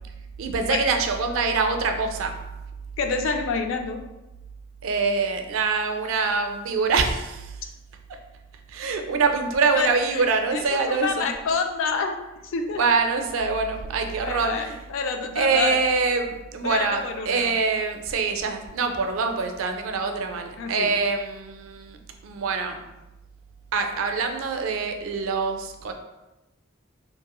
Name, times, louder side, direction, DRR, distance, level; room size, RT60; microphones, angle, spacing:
voice 1, 0.4-2.3 4.8-7.6 8.7-11.3 12.7-14.8 15.4-22.0 22.2-22.8 23.7-25.9, right 4 dB, 70° right, 5 dB, 0.4 m, -24 dB
voice 2, 3.0-4.0 9.7-10.2 10.5-12.2 12.4-12.8 14.2-15.8 16.6-17.5 20.6-20.9, left 4 dB, 65° left, 5 dB, 0.3 m, -28 dB
3.0 x 2.6 x 2.2 m, 1.0 s
head